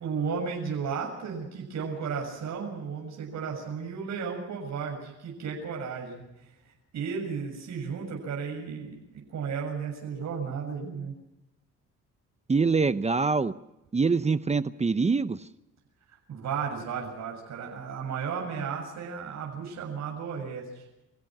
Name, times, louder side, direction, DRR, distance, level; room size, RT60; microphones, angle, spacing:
voice 1, 0.0-6.5 6.9-11.1 16.1-20.9, right 6 dB, 65° right, 0 dB, 7.2 m, -34 dB
voice 2, 12.5-13.5 13.9-15.4, right 4 dB, 20° right, 13 dB, 0.8 m, -24 dB
27.0 x 16.0 x 6.1 m, 0.91 s
cardioid pair, 90°, 30 cm